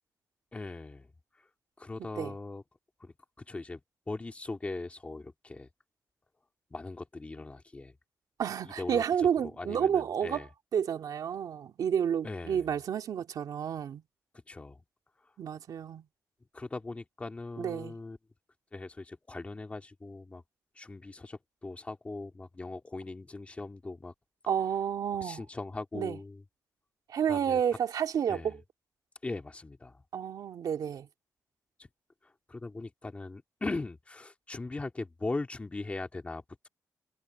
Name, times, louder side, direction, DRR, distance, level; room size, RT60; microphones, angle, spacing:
voice 1, 0.5-1.1 1.8-2.6 3.0-3.8 4.1-5.7 6.7-7.9 8.6-10.5 12.2-12.7 14.5-14.8 16.5-18.2 18.7-20.4 20.8-24.1 25.2-26.4 27.3-27.6 28.3-28.6 29.2-30.0 32.2-36.7, left 3 dB, 20° left, 2.3 m, -40 dB
voice 2, 8.4-10.5 10.7-14.0 15.4-16.0 17.6-18.0 24.5-25.4 25.9-26.2 27.1-28.6 30.1-31.1, right 8 dB, 75° right, 2.3 m, -30 dB
wide cardioid pair, 165°, 6 cm